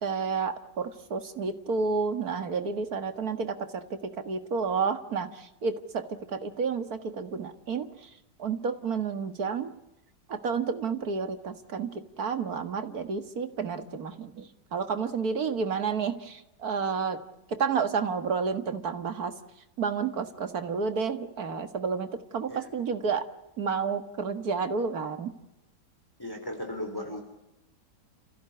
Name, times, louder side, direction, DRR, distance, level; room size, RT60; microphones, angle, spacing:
voice 1, 0.0-8.1 8.4-9.7 10.3-17.2 17.5-19.3 19.8-23.2 23.6-25.3, right 5 dB, 60° right, 8 dB, 2.1 m, -30 dB
voice 2, 26.2-27.2, left 1 dB, 10° left, 4 dB, 3.5 m, -36 dB
30.0 x 15.5 x 9.7 m, 0.91 s
omnidirectional pair, 1.8 m